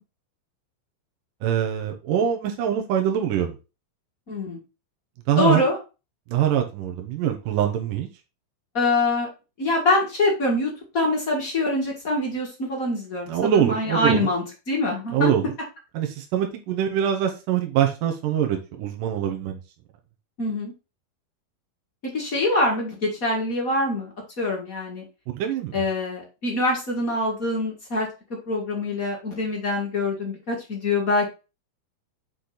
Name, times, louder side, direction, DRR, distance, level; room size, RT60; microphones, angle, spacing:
voice 1, 1.4-3.6 5.3-5.6 6.3-8.1 13.3-14.3 15.1-15.5 15.9-19.6 25.3-25.8, right 10 dB, 70° right, 3 dB, 2.3 m, -24 dB
voice 2, 4.3-4.6 5.4-5.8 8.7-9.3 9.6-15.3 20.4-20.7 22.1-25.0 25.7-28.1 28.5-31.3, left 2 dB, 45° left, -2 dB, 1.0 m, -24 dB
6.8 x 4.4 x 3.9 m, 0.29 s
omnidirectional pair, 4.7 m